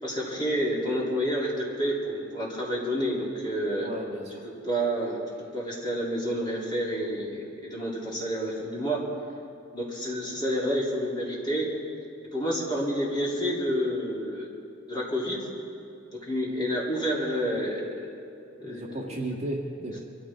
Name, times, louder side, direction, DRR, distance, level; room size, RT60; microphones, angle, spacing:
voice 1, 0.0-1.5 1.8-3.9 4.4-5.2 5.5-9.0 9.7-11.7 12.3-14.5 14.9-15.4 16.2-18.1 18.6-19.1, equal, 25° left, -5 dB, 3.4 m, -29 dB
voice 2, 3.8-4.4 18.6-20.0, right 1 dB, 35° right, -1 dB, 1.8 m, -34 dB
23.5 x 14.5 x 3.8 m, 2.8 s
head